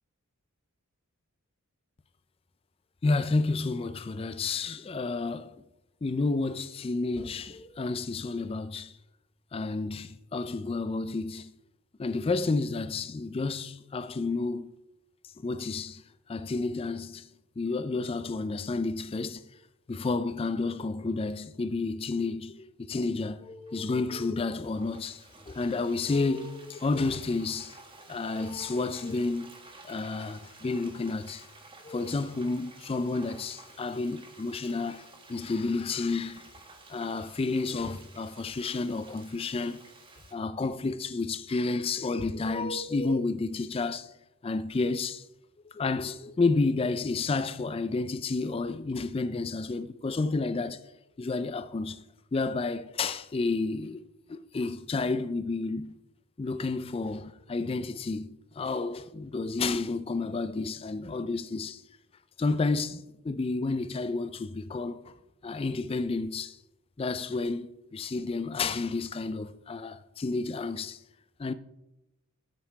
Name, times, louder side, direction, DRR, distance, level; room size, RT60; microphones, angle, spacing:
voice 1, 3.0-5.6 6.0-8.9 9.5-11.5 12.0-14.7 15.2-16.0 16.3-17.3 17.6-19.5 19.9-27.8 28.1-29.5 29.8-31.5 31.8-36.5 36.9-39.8 40.3-44.1 44.4-45.3 45.6-50.8 51.2-52.0 52.3-54.0 54.3-56.0 56.4-61.8 62.4-65.1 65.4-66.6 67.0-71.0 71.4-71.5, left 3 dB, 25° left, 0.3 m, -31 dB
Frying (food), 23.7-40.3, right 2 dB, 25° right, 1.6 m, -52 dB
13.0 x 5.7 x 4.7 m
head